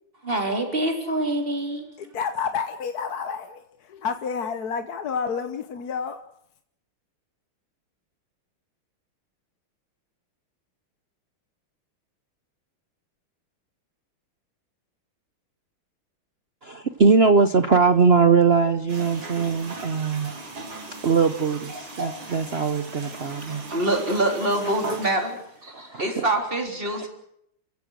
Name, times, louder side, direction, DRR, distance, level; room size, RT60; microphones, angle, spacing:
voice 1, 0.2-1.9 23.7-27.1, right 1 dB, 25° right, 4.0 m, -25 dB
voice 2, 2.0-6.2, left 6 dB, 55° left, 1.4 m, -30 dB
voice 3, 16.6-20.3 21.0-23.6 25.7-26.2 27.0-27.1, right 5 dB, 55° right, 0.6 m, -21 dB
sound 1, 18.9-25.5, right 2 dB, 75° right, 4.2 m, -37 dB
29.5 x 15.5 x 6.4 m
omnidirectional pair, 2.3 m